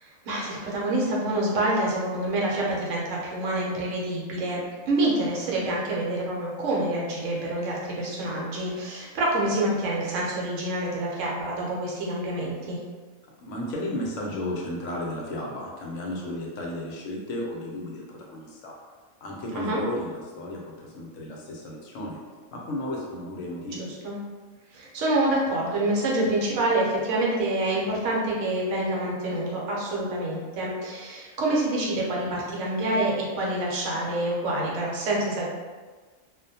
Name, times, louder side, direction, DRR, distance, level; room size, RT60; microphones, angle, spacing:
voice 1, 0.0-12.8 19.5-19.8 23.8-24.2 24.7-35.5, right 1 dB, 70° right, -4 dB, 1.0 m, -27 dB
voice 2, 13.4-18.7 19.2-22.2 22.5-23.9, left 1 dB, 70° left, -2 dB, 0.9 m, -34 dB
2.4 x 2.1 x 2.6 m, 1.4 s
omnidirectional pair, 1.4 m